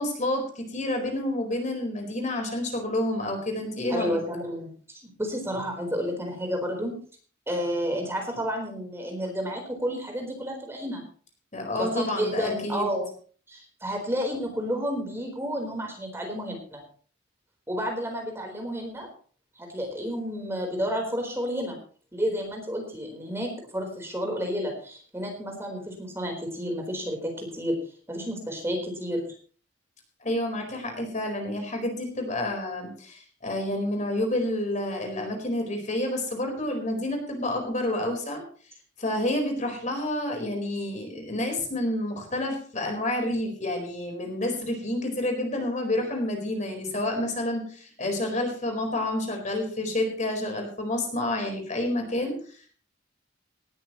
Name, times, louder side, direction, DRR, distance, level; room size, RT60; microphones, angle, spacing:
voice 1, 0.0-4.2 11.5-12.9 30.2-38.4 39.0-52.7, left 1 dB, 40° left, 3 dB, 4.4 m, -29 dB
voice 2, 3.9-7.0 7.5-11.0 11.7-13.1 13.5-16.8 17.7-19.1 19.6-21.8 22.1-27.8 28.1-29.3, equal, 15° right, 1 dB, 4.1 m, -31 dB
19.0 x 13.0 x 3.1 m, 0.43 s
head